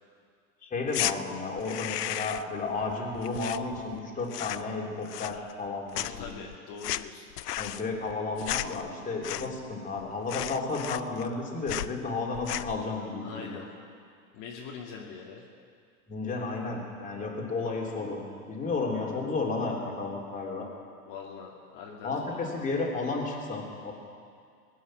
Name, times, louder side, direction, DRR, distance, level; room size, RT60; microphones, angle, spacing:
voice 1, 0.7-6.3 7.6-13.6 16.1-20.7 22.0-23.9, left 3 dB, 15° left, -2 dB, 3.2 m, -32 dB
sound 1, 0.9-1.2 1.6-2.6 2.8-4.0 4.3-4.8 5.1-5.7 5.9-9.7 10.0-10.1 10.3-11.4 11.7-11.9 12.3-12.8, left 13 dB, 75° left, 0.6 m, -34 dB
voice 2, 5.9-7.2 13.2-13.6 14.3-15.4 21.0-22.7, left 5 dB, 45° left, -3 dB, 2.3 m, -43 dB
21.5 x 9.5 x 6.3 m, 2.2 s
hypercardioid pair, 110°, 47 cm